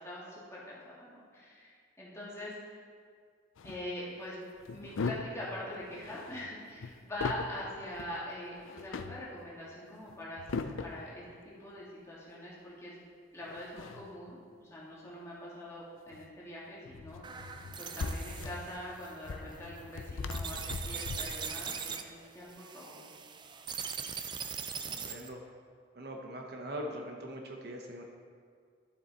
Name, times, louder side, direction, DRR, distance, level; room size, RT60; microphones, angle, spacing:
voice 1, 0.0-2.8 3.6-4.4 4.7-13.0 13.3-17.2 17.8-23.0, left 1 dB, 15° left, -7 dB, 2.0 m, -43 dB
sound 1, 3.6-3.8 4.6-5.5 5.7-7.6 7.9-8.2 8.6-9.3 10.1-11.1 13.4-14.3 16.1-16.3 16.8-21.5, left 4 dB, 85° left, 0.5 m, -39 dB
sound 2, 17.2-25.3, right 6 dB, 25° right, 0.3 m, -41 dB
voice 2, 24.9-25.4 25.9-28.0, equal, 50° right, 1 dB, 0.9 m, -42 dB
12.0 x 7.4 x 4.1 m, 2.1 s
head